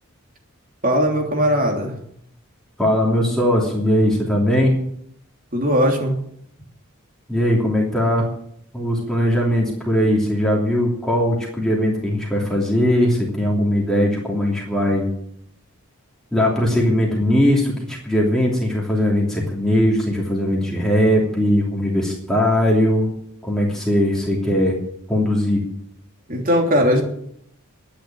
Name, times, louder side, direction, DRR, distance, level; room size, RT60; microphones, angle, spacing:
voice 1, 0.8-2.0 5.5-6.2 26.3-27.0, equal, 40° right, 2 dB, 3.2 m, -19 dB
voice 2, 2.8-4.9 7.3-8.3 8.7-15.1 16.3-23.1 23.4-24.8 25.1-25.6, left 1 dB, ahead, -3 dB, 2.9 m, -19 dB
12.0 x 10.0 x 9.0 m, 0.70 s
head